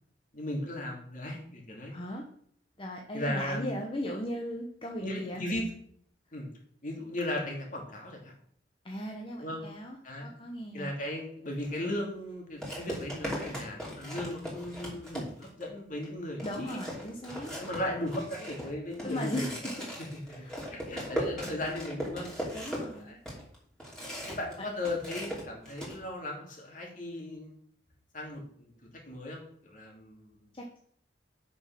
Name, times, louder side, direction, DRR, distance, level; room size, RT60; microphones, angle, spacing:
voice 1, 0.3-2.0 3.1-3.8 5.0-5.7 6.3-6.5 6.8-8.3 9.4-9.6 10.0-10.3 10.7-16.8 17.6-19.5 20.0-22.3 23.0-23.2 24.3-27.6 28.1-28.7 29.1-30.4, left 1 dB, 45° left, 0 dB, 2.6 m, -36 dB
voice 2, 1.9-2.2 2.8-5.4 8.8-10.9 16.4-17.5 19.0-19.5 19.8-19.9 20.4-20.5 22.5-23.2 30.5-30.8, equal, 30° left, 0 dB, 1.0 m, -37 dB
sound 1, 11.6-11.8 12.6-15.6 16.0-16.1 16.4-24.5 24.8-26.0, equal, 5° left, 2.9 m, -38 dB
7.9 x 6.0 x 5.9 m, 0.62 s
head